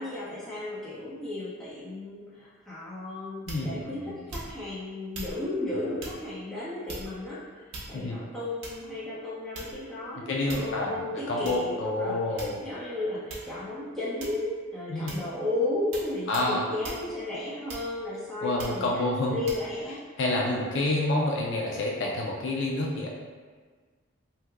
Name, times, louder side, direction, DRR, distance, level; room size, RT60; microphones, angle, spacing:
voice 1, 0.0-19.0 19.3-20.0, left 2 dB, ahead, -11 dB, 0.8 m, -34 dB
voice 2, 3.5-4.2 5.8-5.9 7.9-8.2 10.3-10.9 11.3-12.6 14.9-15.1 16.3-16.6 18.4-19.4 20.2-23.1, left 2 dB, 60° left, -2 dB, 0.4 m, -28 dB
sound 1, 3.5-3.8 4.3-4.7 5.1-5.4 6.0-6.2 6.9-7.3 7.7-8.1 8.6-8.9 9.5-9.9 10.5-10.8 11.4-11.6 12.4-12.8 13.3-13.5 14.2-14.5 15.1-15.3 15.9-16.1 16.3-16.5 16.8-17.0 17.7-18.1 18.6-18.8 19.5-19.6, right 2 dB, 65° right, 0.6 m, -40 dB
2.8 x 2.2 x 3.5 m, 1.5 s
head